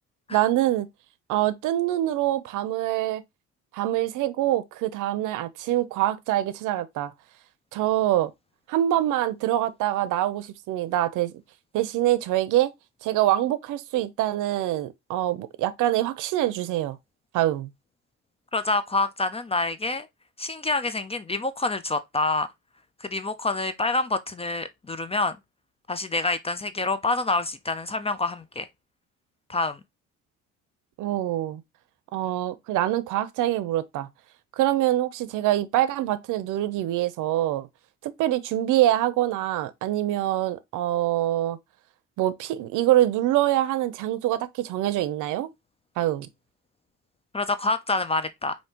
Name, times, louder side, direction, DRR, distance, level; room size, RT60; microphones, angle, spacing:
voice 1, 0.3-0.9 1.3-3.2 3.7-7.1 7.7-8.3 8.7-11.3 11.7-12.7 13.0-17.0 17.3-17.7 31.0-31.6 32.1-34.1 34.6-37.7 38.0-41.6 42.2-45.5 46.0-46.3, right 13 dB, 90° right, 0.6 m, -25 dB
voice 2, 18.5-20.1 20.4-22.5 23.0-25.4 25.9-28.7 29.5-29.8 47.3-48.5, left 3 dB, 20° left, 0.4 m, -27 dB
5.1 x 2.7 x 2.8 m
cardioid pair, 90°, 30 cm